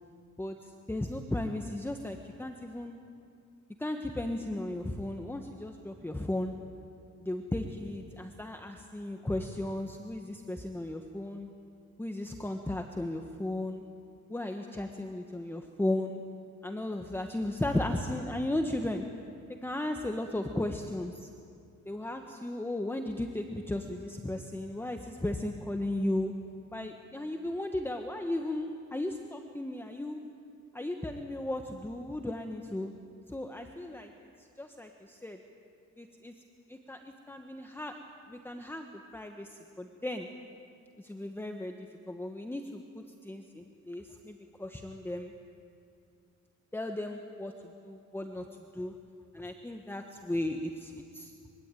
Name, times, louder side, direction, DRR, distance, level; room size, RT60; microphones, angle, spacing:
voice 1, 0.4-3.0 3.8-6.5 7.2-11.5 12.0-13.8 14.3-16.2 16.6-19.0 19.5-21.3 21.9-26.3 26.7-30.2 30.7-32.9 33.3-34.1 34.6-35.4 36.0-36.3 36.7-37.0 37.3-38.0 38.3-38.9 39.1-40.3 41.0-45.3 46.7-47.5 47.8-48.5 48.7-48.9 49.3-51.3, left 1 dB, 5° left, 4 dB, 1.3 m, -35 dB
24.5 x 23.0 x 9.2 m, 2.4 s
cardioid pair, 135°, 30 cm